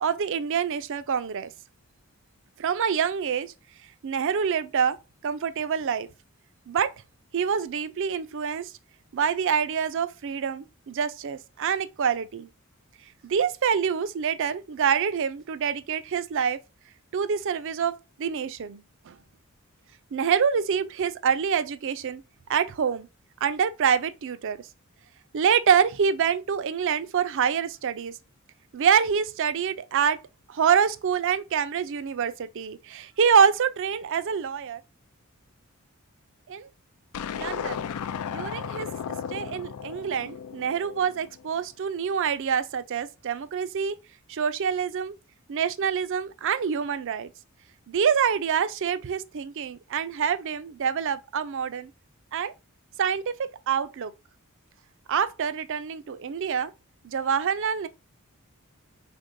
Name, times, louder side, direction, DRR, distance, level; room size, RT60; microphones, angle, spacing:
voice 1, 0.0-1.5 2.6-3.5 4.0-5.0 5.2-6.1 6.7-6.9 7.3-8.7 9.1-12.5 13.2-16.6 17.1-19.2 20.1-22.2 22.5-23.1 23.4-24.6 25.3-28.1 28.7-30.2 30.5-34.8 36.5-36.7 37.3-37.8 38.3-38.9 39.3-44.0 44.3-45.1 45.5-47.3 47.9-51.9 52.3-52.5 53.0-54.1 55.1-56.7 57.0-57.9, right 7 dB, 60° right, 0.4 m, -26 dB
sound 1, 37.1-41.5, left 7 dB, 80° left, 0.4 m, -35 dB
5.2 x 3.5 x 2.6 m
head